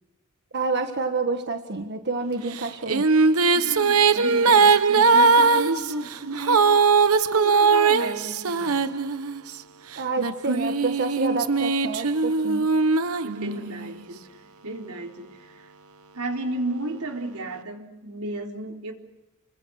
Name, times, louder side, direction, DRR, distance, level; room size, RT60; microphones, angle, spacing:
voice 1, 0.5-3.1 10.0-12.7, right 3 dB, 50° right, 6 dB, 1.5 m, -28 dB
Female singing, 2.6-9.5 10.2-13.9, right 4 dB, 70° right, 1.0 m, -20 dB
voice 2, 3.5-6.7 7.3-8.9 13.2-15.7 16.1-18.9, right 2 dB, 85° right, 3 dB, 3.9 m, -33 dB
29.5 x 24.0 x 6.5 m, 1.0 s
head